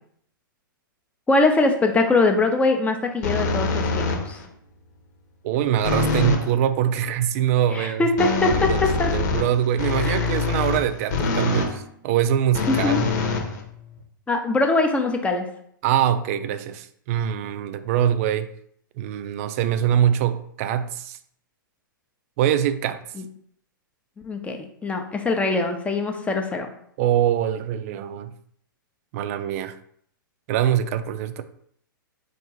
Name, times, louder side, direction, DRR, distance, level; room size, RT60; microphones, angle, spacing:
voice 1, 1.3-4.4 7.7-9.1 10.0-10.3 12.7-13.0 14.3-15.5 23.2-23.3 24.2-26.7, left 3 dB, 10° left, 0.6 m, -22 dB
sound 1, 3.2-4.5 5.8-6.5 8.2-11.8 12.5-14.0, left 4 dB, 55° left, 1.1 m, -24 dB
voice 2, 5.4-8.1 8.7-8.8 9.1-13.1 15.8-18.5 19.0-21.2 22.4-23.0 27.0-28.3 29.1-29.8 30.5-31.4, right 10 dB, 45° right, 0.4 m, -23 dB
4.4 x 2.6 x 4.7 m
hypercardioid pair, 115°, 11 cm